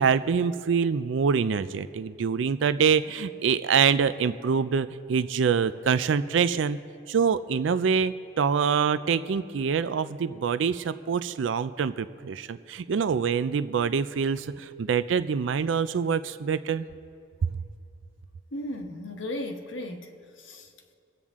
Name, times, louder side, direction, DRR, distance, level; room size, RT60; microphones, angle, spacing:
voice 1, 0.0-6.8 7.1-16.9 17.4-17.5, right 6 dB, 80° right, 13 dB, 0.4 m, -25 dB
voice 2, 18.5-20.9, left 1 dB, 90° left, 4 dB, 1.2 m, -36 dB
24.5 x 8.8 x 3.6 m, 2.4 s
head